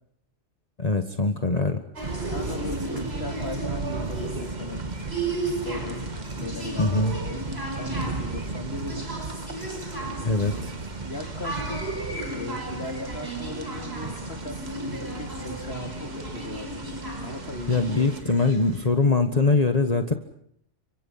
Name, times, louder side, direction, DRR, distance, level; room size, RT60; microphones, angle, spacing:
voice 1, 0.8-1.8 6.8-7.1 10.2-10.7 17.7-20.1, left 3 dB, 35° left, 6 dB, 1.6 m, -22 dB
sound 1, 2.0-18.2, right 3 dB, 40° right, 1.7 m, -35 dB
sound 2, 2.0-18.9, right 2 dB, 60° right, 5.7 m, -35 dB
voice 2, 2.2-4.8 5.5-6.0 6.3-7.4 7.7-9.1 11.0-11.9 12.3-17.7, left 2 dB, 60° left, 5 dB, 3.5 m, -38 dB
30.0 x 26.0 x 5.7 m, 0.69 s
omnidirectional pair, 1.2 m